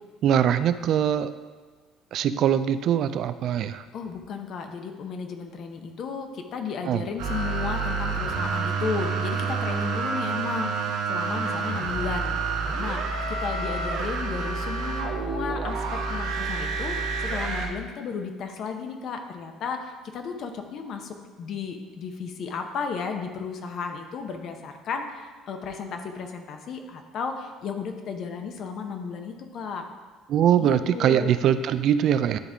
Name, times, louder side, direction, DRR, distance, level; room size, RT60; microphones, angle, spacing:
voice 1, 0.2-1.3 2.1-3.8 6.9-7.0 30.3-32.4, right 9 dB, 60° right, 12 dB, 0.3 m, -22 dB
voice 2, 3.9-12.4 12.8-29.8 30.6-31.3, left 5 dB, 55° left, 5 dB, 0.8 m, -34 dB
sound 1, 7.2-17.7, right 4 dB, 80° right, 1.0 m, -28 dB
10.5 x 3.6 x 3.5 m, 1.4 s
supercardioid pair, 95°, 0 cm